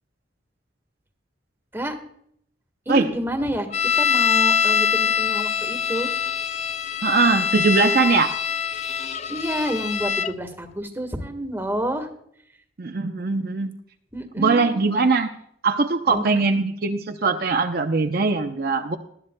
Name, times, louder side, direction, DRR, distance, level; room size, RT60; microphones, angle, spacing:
voice 1, 2.8-6.1 9.3-12.1 14.1-14.8 16.1-16.4, equal, 10° right, 5 dB, 1.5 m, -29 dB
sound 1, 3.7-10.3, left 7 dB, 35° left, 0.4 m, -23 dB
voice 2, 7.0-8.4 12.8-13.7 14.4-15.3 15.6-19.0, right 4 dB, 55° right, 5 dB, 0.7 m, -21 dB
19.5 x 12.5 x 2.2 m, 0.69 s
head